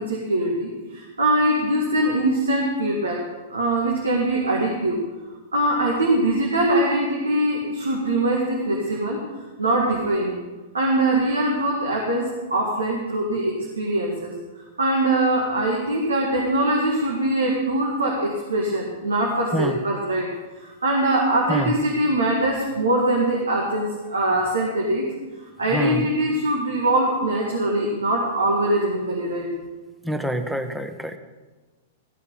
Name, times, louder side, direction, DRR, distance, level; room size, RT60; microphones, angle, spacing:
voice 1, 0.0-3.2 3.5-5.0 5.5-9.2 9.6-10.4 10.7-14.3 14.8-20.3 20.6-25.1 25.6-29.5, right 1 dB, 85° right, -1 dB, 1.9 m, -22 dB
voice 2, 25.7-26.0 30.0-31.2, right 1 dB, 5° right, 7 dB, 1.1 m, -26 dB
15.0 x 8.1 x 5.6 m, 1.2 s
hypercardioid pair, 105°, 0 cm